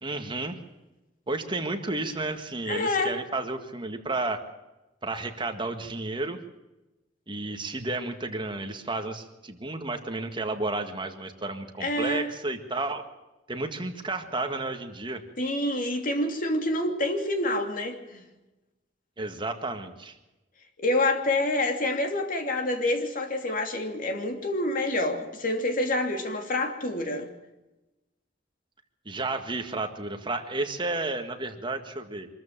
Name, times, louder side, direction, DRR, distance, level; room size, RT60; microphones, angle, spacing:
voice 1, 0.0-0.6 1.3-4.4 5.0-6.4 7.3-13.0 13.5-15.2 19.2-20.2 29.1-32.3, right 2 dB, 25° right, 1.8 m, -32 dB
voice 2, 2.7-3.1 11.8-12.3 15.4-18.2 20.8-27.3, left 1 dB, 50° left, 2.9 m, -27 dB
25.5 x 14.0 x 7.4 m
head